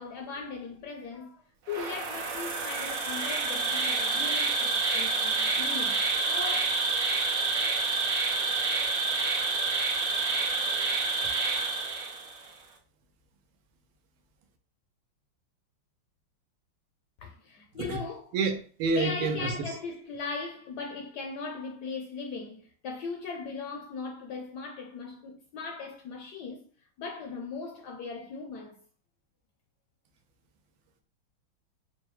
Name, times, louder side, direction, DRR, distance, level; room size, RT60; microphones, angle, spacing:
voice 1, 0.0-6.6 17.2-18.3 19.0-26.6 27.0-28.8, left 4 dB, 75° left, 0.9 m, -38 dB
Insect, 1.7-12.5, right 4 dB, 65° right, 0.9 m, -28 dB
voice 2, 18.3-19.6, right 3 dB, 90° right, 1.6 m, -28 dB
4.9 x 2.2 x 3.1 m
omnidirectional pair, 2.4 m